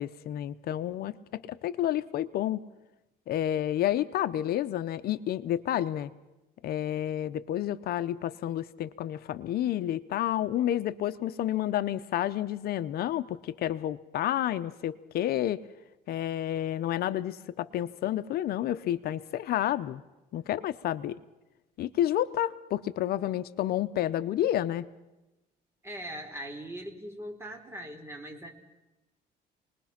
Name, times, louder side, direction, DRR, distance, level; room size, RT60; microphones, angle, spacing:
voice 1, 0.0-2.6 3.3-6.1 6.6-15.6 16.1-20.0 20.3-21.2 21.8-24.9, left 12 dB, 65° left, 12 dB, 0.7 m, -30 dB
voice 2, 25.8-28.5, right 1 dB, 15° right, 3 dB, 3.9 m, -40 dB
28.0 x 20.5 x 5.9 m, 1.0 s
cardioid pair, 110°, 17 cm